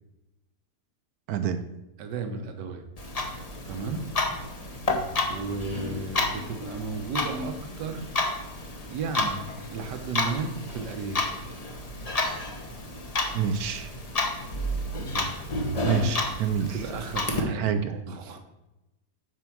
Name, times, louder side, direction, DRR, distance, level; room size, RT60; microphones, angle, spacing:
voice 1, 1.3-1.6 13.3-13.9 15.8-16.8 17.4-18.0, right 7 dB, 70° right, 9 dB, 1.0 m, -27 dB
voice 2, 2.0-3.1 3.6-4.0 5.2-8.1 8.6-9.5 9.7-11.5 15.1-15.5 16.7-18.4, right 4 dB, 85° right, 6 dB, 1.5 m, -34 dB
Clock, 3.0-17.4, left 2 dB, 30° left, 0.8 m, -31 dB
8.1 x 4.6 x 6.0 m, 0.98 s
omnidirectional pair, 1.8 m